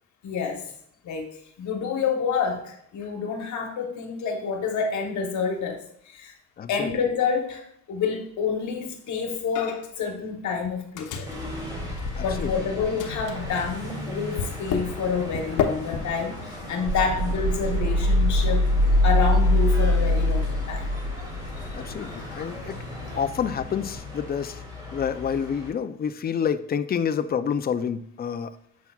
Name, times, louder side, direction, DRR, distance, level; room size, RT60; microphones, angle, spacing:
voice 1, 0.2-0.7 1.0-1.3 1.6-6.3 6.7-11.3 12.2-18.7 19.0-20.9, left 5 dB, 70° left, 3 dB, 1.2 m, -28 dB
voice 2, 6.6-6.9 12.2-12.6 21.7-22.8 23.2-24.6 24.9-28.6, left 7 dB, 30° left, 12 dB, 0.4 m, -28 dB
Microwave oven, 9.6-10.0 10.3-12.6 13.0-24.0, left 7 dB, 85° left, 0.9 m, -36 dB
sound 1, 11.3-25.7, left 1 dB, 15° right, 2.5 m, -37 dB
sound 2, 16.9-21.7, left 1 dB, 90° right, 1.8 m, -22 dB
7.1 x 5.7 x 2.3 m, 0.72 s
cardioid pair, 90°, 30 cm